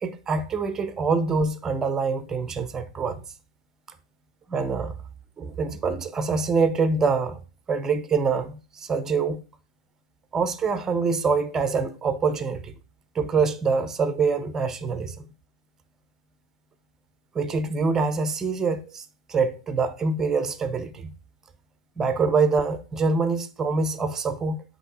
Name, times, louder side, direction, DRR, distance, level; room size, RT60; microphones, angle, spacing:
voice 1, 0.0-3.2 4.5-4.9 5.4-7.4 7.7-9.4 10.3-12.7 13.1-15.3 17.3-19.0 19.3-21.1 22.0-24.6, right 4 dB, 15° right, 0.7 m, -25 dB
8.1 x 3.0 x 4.2 m
hypercardioid pair, 110°, 3 cm